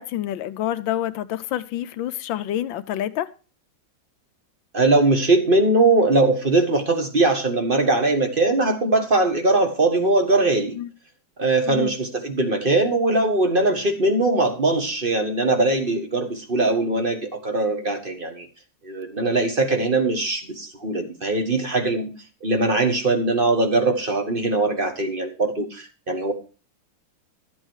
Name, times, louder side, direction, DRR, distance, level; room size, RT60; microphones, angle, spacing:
voice 1, 0.0-3.3 10.7-10.9 11.7-11.9, left 12 dB, 75° left, 1.4 m, -28 dB
voice 2, 4.7-10.8 11.4-18.5 18.8-22.1 22.4-26.3, right 2 dB, 30° right, 1.4 m, -21 dB
12.5 x 8.2 x 4.6 m
omnidirectional pair, 2.2 m